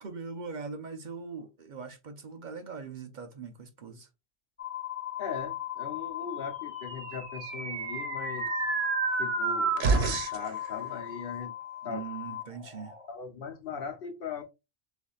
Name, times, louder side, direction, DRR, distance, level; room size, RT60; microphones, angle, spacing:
voice 1, 0.0-4.1 11.8-12.9, right 5 dB, 50° right, 0.7 m, -41 dB
sound 1, 4.6-13.1, left 12 dB, 30° left, 1.2 m, -38 dB
voice 2, 5.2-8.5 9.2-11.5 11.8-12.0 13.1-14.4, left 6 dB, 65° left, 1.0 m, -39 dB
sound 2, 6.9-10.5, right 5 dB, 85° right, 1.1 m, -29 dB
6.7 x 2.7 x 2.3 m
omnidirectional pair, 1.0 m